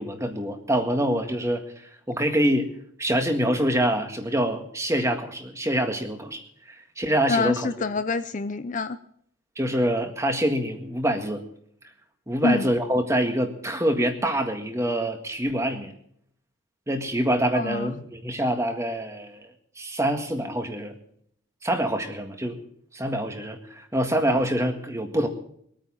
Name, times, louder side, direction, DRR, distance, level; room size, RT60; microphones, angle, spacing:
voice 1, 0.0-2.7 3.0-7.7 9.6-11.4 12.3-15.9 16.9-19.5 19.8-20.9 21.6-22.6 22.9-25.3, right 1 dB, 15° right, 5 dB, 1.8 m, -25 dB
voice 2, 7.3-9.0 12.4-12.7 17.5-17.9, left 3 dB, 35° left, 11 dB, 0.5 m, -26 dB
22.5 x 9.2 x 6.1 m, 0.66 s
head